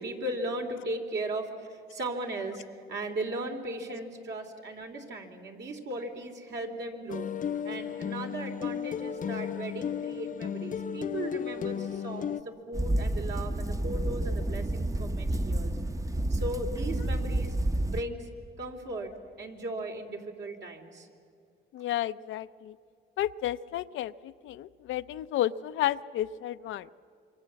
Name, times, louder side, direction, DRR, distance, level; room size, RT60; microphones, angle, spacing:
voice 1, 0.0-7.3 7.6-12.3 12.7-15.8 16.3-17.6 17.8-18.3 18.6-19.1 19.4-21.1, right 1 dB, 60° right, 2 dB, 3.2 m, -37 dB
sound 1, 7.1-12.4, left 8 dB, 40° left, 0.7 m, -34 dB
sound 2, 12.7-18.0, right 1 dB, 15° right, 0.8 m, -30 dB
voice 2, 21.7-22.8 23.2-26.9, left 13 dB, 80° left, 13 dB, 0.6 m, -32 dB
26.0 x 23.5 x 7.6 m, 2.3 s
cardioid pair, 90°, 20 cm